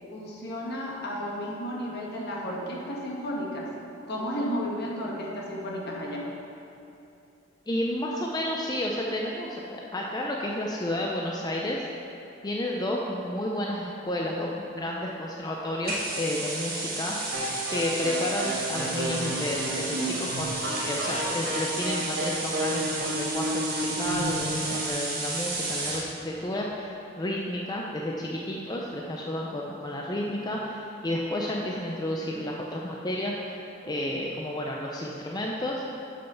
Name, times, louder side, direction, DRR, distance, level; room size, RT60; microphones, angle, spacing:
voice 1, 0.1-3.7 4.1-6.3, equal, 55° left, -3 dB, 1.4 m, -33 dB
voice 2, 7.7-11.9 12.4-17.2 17.7-33.4 33.8-35.8, left 1 dB, 20° left, -2 dB, 0.5 m, -31 dB
sound 1, 15.8-26.1, right 2 dB, 50° right, 1.5 m, -33 dB
sound 2, 17.3-24.9, right 1 dB, 80° right, 2.0 m, -32 dB
6.6 x 6.4 x 5.7 m, 2.7 s
head